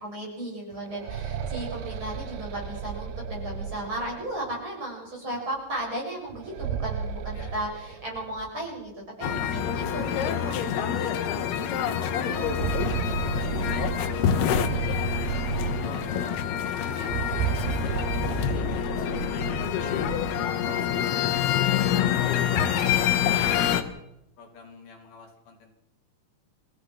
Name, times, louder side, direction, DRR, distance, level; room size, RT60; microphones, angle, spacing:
voice 1, 0.0-11.7, right 1 dB, 30° right, -1 dB, 8.0 m, -35 dB
sound 1, 0.7-4.5 6.3-8.5 8.8-8.9 9.8-9.9 10.4-10.5 12.1-16.3 17.0-20.4, right 7 dB, 85° right, 3.2 m, -33 dB
sound 2, 9.2-23.8, left 9 dB, 80° left, 3.4 m, -26 dB
voice 2, 12.2-13.7 14.1-15.5 15.8-17.1 17.6-18.1 18.5-21.3 22.0-23.9 24.4-25.7, left 3 dB, 65° left, 2 dB, 5.0 m, -46 dB
29.5 x 15.5 x 6.2 m, 0.86 s
omnidirectional pair, 4.5 m